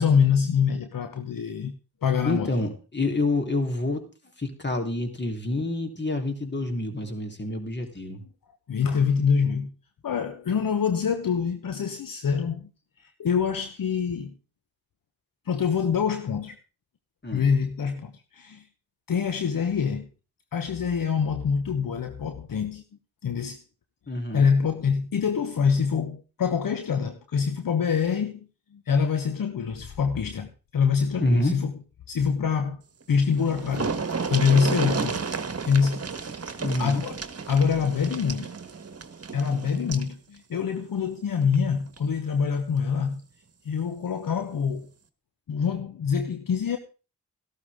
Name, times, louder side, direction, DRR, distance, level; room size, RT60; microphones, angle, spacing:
voice 1, 0.0-1.7 2.0-2.5 8.7-9.7 10.0-12.7 13.0-14.3 15.5-16.6 17.3-18.7 19.1-20.1 20.5-22.8 23.2-23.6 24.3-28.4 28.7-31.7 32.1-32.8 33.1-34.0 34.3-35.2 35.6-36.0 36.5-37.2 37.5-38.5 39.3-43.2 43.6-44.9 45.5-46.8, left 6 dB, 60° left, 1.2 m, -25 dB
voice 2, 2.2-4.0 4.4-8.2 17.2-17.5 24.1-24.5 31.2-31.6 36.6-37.0, left 2 dB, 30° left, 3.5 m, -27 dB
sound 1, 33.0-33.1 33.3-40.1 41.4-41.6 42.0-42.1, right 5 dB, 40° right, 1.5 m, -32 dB
14.5 x 12.5 x 3.6 m
supercardioid pair, 40°, 37 cm